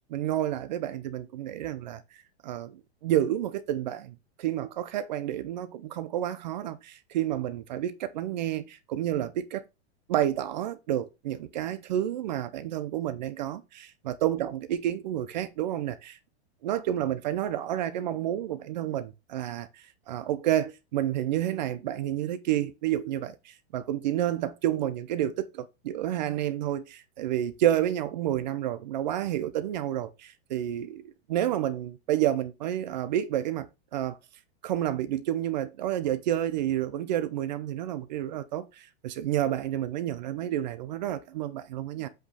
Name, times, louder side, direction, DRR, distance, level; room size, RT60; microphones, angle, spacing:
voice 1, 0.1-2.0 2.4-9.6 10.1-16.2 16.6-19.7 20.1-33.7 33.9-34.2 34.6-42.1, right 12 dB, 40° right, 0.5 m, -30 dB
7.9 x 3.0 x 4.9 m
supercardioid pair, 170°, 33 cm